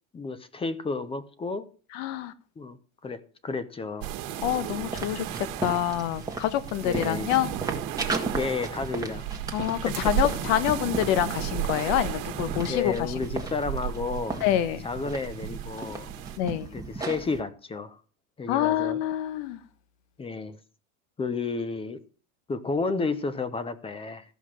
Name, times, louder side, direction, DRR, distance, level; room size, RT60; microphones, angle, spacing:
voice 1, 0.1-1.7 2.6-2.8 3.0-4.1 6.8-7.3 8.4-9.3 9.8-9.9 12.7-14.4 14.8-16.1 16.7-18.0 18.4-19.0 20.2-20.6 21.2-22.0 22.5-24.2, left 4 dB, 15° left, 0.7 m, -31 dB
voice 2, 1.9-2.3 4.4-7.5 9.5-13.1 14.4-14.8 16.4-16.7 18.5-19.6, left 12 dB, 65° left, 1.4 m, -26 dB
sound 1, 4.0-16.4, right 12 dB, 65° right, 1.6 m, -35 dB
sound 2, 4.6-17.4, right 3 dB, 10° right, 1.6 m, -36 dB
14.0 x 5.7 x 6.4 m
supercardioid pair, 140°, 43 cm